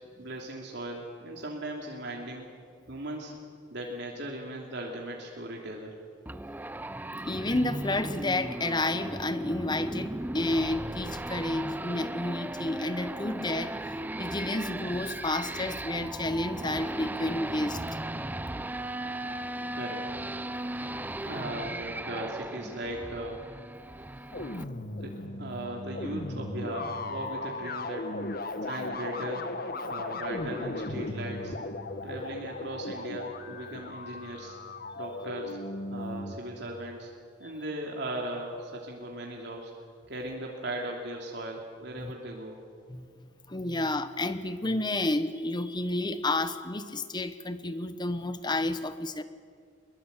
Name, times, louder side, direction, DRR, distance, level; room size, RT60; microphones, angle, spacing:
voice 1, 0.2-2.5 2.9-3.3 3.7-5.9 19.4-20.1 21.2-23.4 25.0-28.0 28.6-29.5 29.9-31.6 32.0-34.6 34.9-35.6 35.9-37.1 37.4-39.7 40.1-42.6, right 1 dB, 65° right, 0 dB, 3.1 m, -38 dB
sound 1, 6.3-24.6, right 1 dB, 10° right, 0.5 m, -37 dB
voice 2, 7.2-17.8 42.0-42.1 42.9-43.1 43.5-49.2, left 2 dB, 25° left, 12 dB, 1.0 m, -31 dB
sound 2, 24.3-36.3, left 2 dB, 55° left, 1.5 m, -37 dB
23.0 x 22.0 x 8.3 m, 2.1 s
head